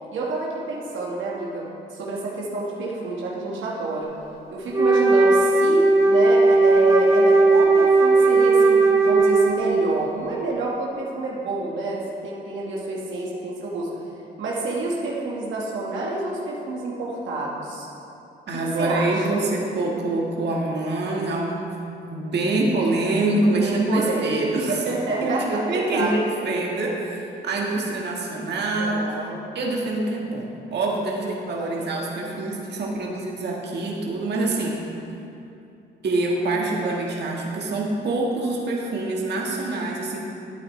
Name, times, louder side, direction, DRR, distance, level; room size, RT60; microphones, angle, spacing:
voice 1, 0.1-4.1 4.5-13.9 14.4-17.9 18.5-19.5 23.6-24.4 24.7-26.1 28.8-29.4 31.2-31.3 31.6-31.9, right 3 dB, 75° right, -4 dB, 1.5 m, -28 dB
Wind instrument woodwind instrument, 4.7-9.9, right 3 dB, 15° right, 2.0 m, -17 dB
voice 2, 18.5-21.6 22.0-24.7 25.2-29.0 29.5-34.8 36.0-40.3, right 2 dB, 60° right, -2 dB, 1.6 m, -25 dB
12.0 x 8.8 x 3.2 m, 2.8 s
cardioid pair, 90°, 20 cm